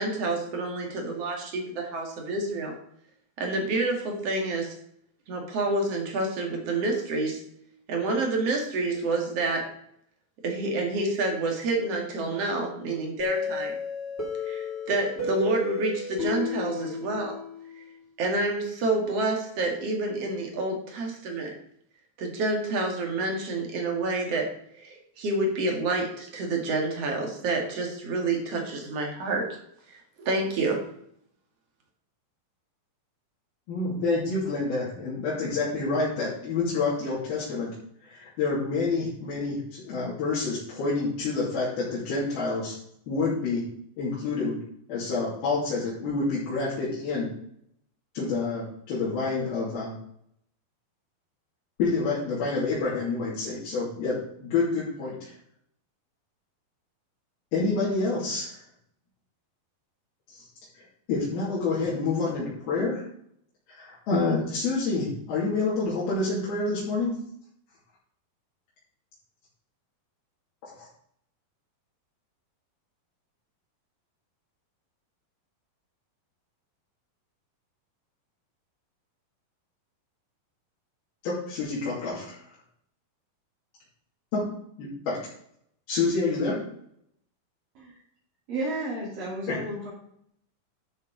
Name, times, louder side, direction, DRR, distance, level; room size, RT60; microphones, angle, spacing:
voice 1, 0.0-2.7 3.4-4.7 5.3-7.4 7.9-9.7 10.4-13.8 14.4-17.4 18.2-21.5 22.2-24.5 24.8-29.5 29.9-30.8, right 2 dB, 50° right, 2 dB, 2.6 m, -28 dB
sound 1, 13.2-17.9, left 4 dB, 5° left, 3.2 m, -33 dB
voice 2, 33.7-37.7 38.0-42.8 43.1-43.6 44.0-44.6 44.9-47.3 48.1-49.9 51.8-55.3 57.5-58.5 60.3-60.4 60.7-63.0 63.8-67.2 70.8-70.9 81.2-82.4 84.3-84.5 84.8-85.2 85.9-86.6, left 3 dB, 85° left, -9 dB, 4.5 m, -28 dB
voice 3, 88.5-89.9, right 1 dB, 65° right, -8 dB, 5.0 m, -32 dB
12.0 x 7.3 x 3.9 m, 0.69 s
omnidirectional pair, 4.2 m